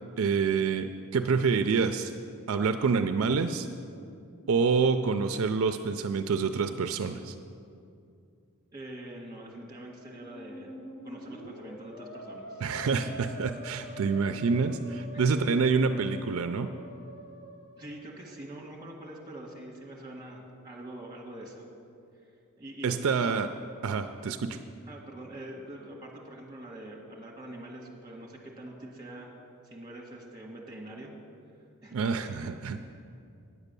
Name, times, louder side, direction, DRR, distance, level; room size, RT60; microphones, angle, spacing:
voice 1, 0.2-2.1 2.5-3.7 4.5-7.4 12.6-16.7 22.8-23.5 23.8-24.6 31.9-32.8, right 5 dB, 70° right, 9 dB, 0.4 m, -27 dB
voice 2, 8.7-10.7 11.0-12.6 15.1-15.3 17.8-21.7 22.6-22.9 24.9-29.4 29.6-31.1 31.8-32.1, right 1 dB, 20° right, -1 dB, 1.7 m, -44 dB
Musical instrument, 10.1-18.1, equal, 50° left, 1.0 m, -45 dB
9.6 x 8.1 x 6.8 m, 2.5 s
head